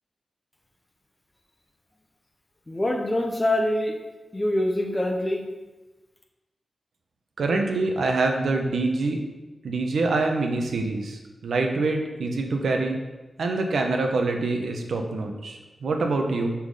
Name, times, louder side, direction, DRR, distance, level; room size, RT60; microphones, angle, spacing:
voice 1, 2.7-4.0 4.3-5.4, left 1 dB, 20° left, 2 dB, 0.8 m, -24 dB
voice 2, 7.4-9.2 9.6-13.0 13.4-16.5, right 3 dB, 90° right, 3 dB, 1.1 m, -25 dB
6.0 x 5.9 x 5.0 m, 1.2 s
wide cardioid pair, 140°, 0 cm